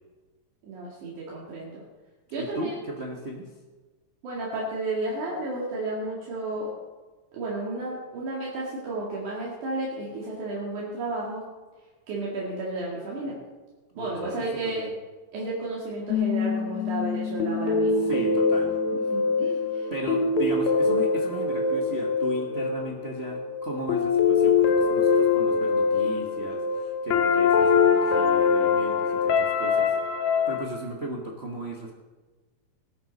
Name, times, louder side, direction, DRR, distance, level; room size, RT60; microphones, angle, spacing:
voice 1, 0.6-1.8 2.3-2.8 4.2-6.7 7.3-11.4 12.1-13.4 14.0-14.8 15.3-18.1 18.9-19.9, right 2 dB, 80° right, -5 dB, 3.6 m, -32 dB
voice 2, 2.4-3.5 13.9-14.9 18.0-18.8 19.9-29.9 30.5-31.9, right 1 dB, 55° right, -1 dB, 0.7 m, -36 dB
sound 1, 16.1-30.7, left 5 dB, 70° left, 2.1 m, -23 dB
18.5 x 11.0 x 4.1 m, 1.3 s
omnidirectional pair, 3.4 m